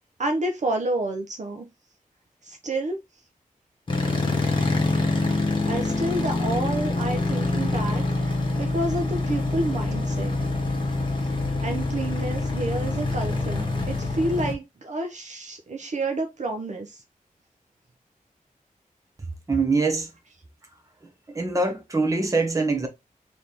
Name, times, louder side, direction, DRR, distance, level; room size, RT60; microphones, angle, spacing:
voice 1, 0.2-1.7 2.4-3.0 5.2-5.3 5.7-10.3 11.6-17.0, right 2 dB, 55° right, 0.8 m, -29 dB
sound 1, 3.9-14.5, left 2 dB, 35° left, 1.3 m, -25 dB
voice 2, 19.5-20.1 21.3-22.9, right 3 dB, 25° right, 0.9 m, -23 dB
3.3 x 3.0 x 4.0 m
wide cardioid pair, 135°, 14 cm